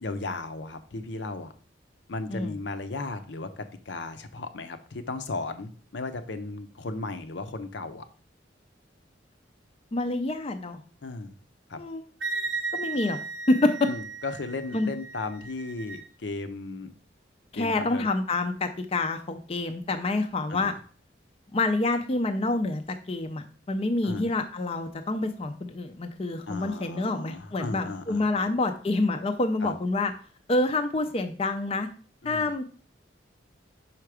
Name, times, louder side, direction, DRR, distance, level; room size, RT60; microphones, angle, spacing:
voice 1, 0.0-1.5 2.1-8.1 11.0-11.3 11.7-11.8 13.9-16.9 17.5-18.1 20.5-20.7 24.0-24.3 26.5-28.5 29.6-29.8 32.2-32.5, left 3 dB, 70° left, 9 dB, 0.7 m, -35 dB
voice 2, 9.9-10.8 11.7-12.0 12.7-13.2 13.5-13.9 14.7-14.9 17.5-20.7 21.5-22.8 23.1-30.1 30.5-31.9 32.2-32.6, left 2 dB, 30° left, 6 dB, 0.5 m, -27 dB
Wind instrument woodwind instrument, 12.2-16.1, right 4 dB, 90° right, 0.8 m, -35 dB
5.7 x 4.6 x 4.9 m, 0.42 s
head